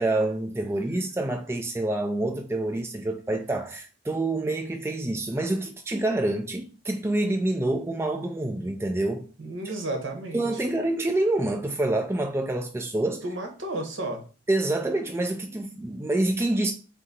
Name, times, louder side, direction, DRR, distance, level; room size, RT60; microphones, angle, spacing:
voice 1, 0.0-9.3 9.7-9.8 10.3-13.2 14.5-16.7, right 2 dB, 15° right, 0.3 m, -27 dB
voice 2, 9.4-10.6 13.2-14.2, right 2 dB, 80° right, 1.0 m, -33 dB
4.0 x 2.6 x 4.0 m
head